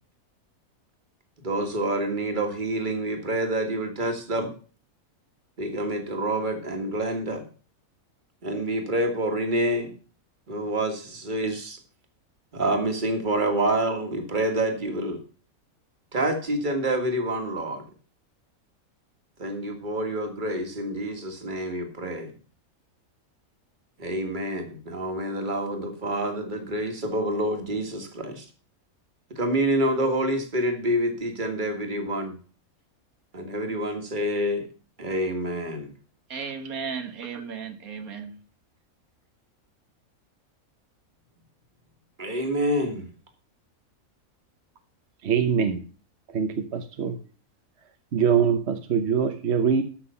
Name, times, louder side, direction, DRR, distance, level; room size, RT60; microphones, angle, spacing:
voice 1, 1.4-4.5 5.6-7.5 8.4-9.9 10.5-11.8 12.5-15.2 16.1-17.8 19.4-22.3 24.0-28.5 29.3-32.4 33.3-34.7 35.0-35.9 42.2-43.1, right 1 dB, 35° right, 2.0 m, -27 dB
voice 2, 36.3-38.4, right 6 dB, 90° right, 1.9 m, -35 dB
voice 3, 45.2-45.8 46.3-47.1 48.1-49.8, right 7 dB, 55° right, 1.1 m, -23 dB
13.5 x 5.9 x 5.6 m
omnidirectional pair, 1.5 m